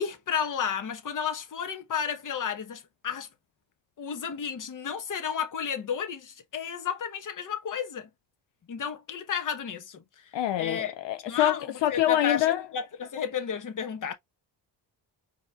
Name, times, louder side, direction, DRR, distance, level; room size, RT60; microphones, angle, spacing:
voice 1, 0.0-3.3 4.0-8.1 8.7-10.3 10.6-10.9 11.3-14.1, left 7 dB, 45° left, 1.1 m, -32 dB
voice 2, 10.3-12.7, left 13 dB, 80° left, 0.7 m, -25 dB
4.7 x 3.0 x 2.3 m
cardioid pair, 110°, 43 cm